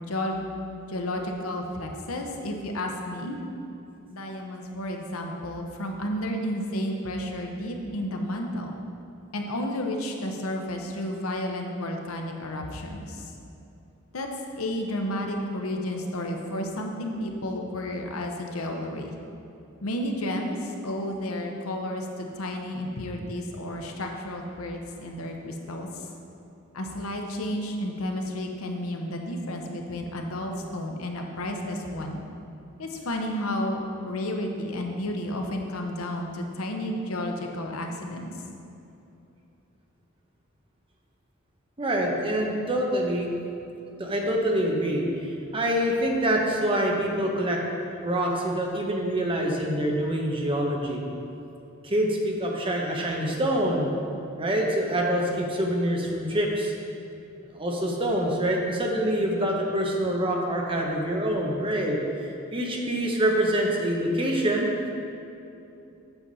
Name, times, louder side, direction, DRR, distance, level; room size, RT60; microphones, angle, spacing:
voice 1, 0.1-0.4 0.9-3.4 4.1-8.7 9.3-13.3 14.1-14.3 14.6-19.1 19.8-26.1 26.7-32.2 32.8-33.8 34.0-38.3, left 1 dB, 80° left, 2 dB, 0.9 m, -32 dB
voice 2, 41.8-43.3 44.0-45.1 45.5-47.6 48.0-51.0 51.8-53.9 54.4-56.7 57.5-62.0 62.5-64.7, right 1 dB, 25° right, 0 dB, 0.9 m, -25 dB
8.1 x 7.1 x 4.0 m, 2.8 s
head